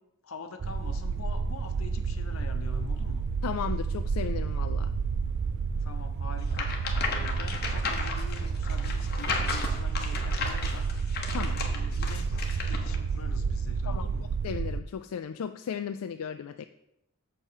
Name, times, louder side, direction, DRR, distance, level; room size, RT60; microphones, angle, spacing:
voice 1, 0.2-3.3 5.8-10.9 11.5-12.3 12.5-14.3, left 3 dB, 70° left, 6 dB, 1.0 m, -45 dB
sound 1, 0.6-14.8, right 5 dB, 55° right, 0.4 m, -30 dB
voice 2, 3.4-4.9 11.3-11.6 13.8-14.1 14.4-16.6, left 7 dB, 90° left, 9 dB, 0.4 m, -35 dB
sound 2, 6.5-13.0, left 4 dB, 45° left, 1.2 m, -34 dB
6.8 x 5.5 x 6.3 m, 0.83 s
head